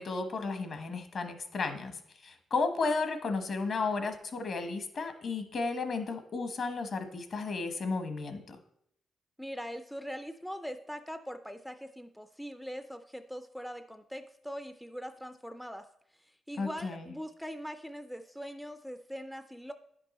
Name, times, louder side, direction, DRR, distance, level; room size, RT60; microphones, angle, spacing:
voice 1, 0.0-2.0 2.2-8.6 16.6-17.1, left 4 dB, 50° left, 8 dB, 1.1 m, -33 dB
voice 2, 9.4-15.9 16.2-19.7, equal, ahead, 9 dB, 0.3 m, -42 dB
10.0 x 5.3 x 4.2 m, 0.73 s
cardioid pair, 110°, 0 cm